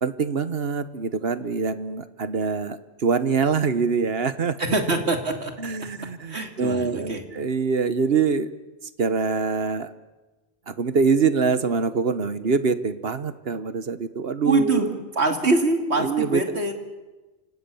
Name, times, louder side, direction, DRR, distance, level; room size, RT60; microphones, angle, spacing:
voice 1, 0.0-4.6 5.6-8.6 9.0-9.9 10.7-14.9 16.0-16.4, right 5 dB, 70° right, 13 dB, 1.4 m, -24 dB
voice 2, 4.6-5.5 6.2-7.2 14.4-14.9 15.1-16.7, right 2 dB, 90° right, 5 dB, 3.0 m, -24 dB
29.0 x 26.0 x 7.1 m, 1.2 s
omnidirectional pair, 1.1 m